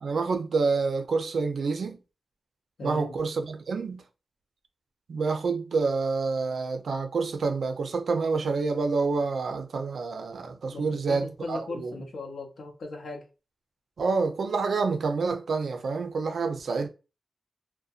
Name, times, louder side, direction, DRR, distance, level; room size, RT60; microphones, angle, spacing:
voice 1, 0.0-2.0 2.8-4.1 5.1-11.9 14.0-16.9, right 4 dB, 85° right, 0.4 m, -28 dB
voice 2, 2.8-3.1 10.7-13.2, left 3 dB, 85° left, 0.7 m, -38 dB
2.6 x 2.1 x 2.3 m
cardioid pair, 50°, 0 cm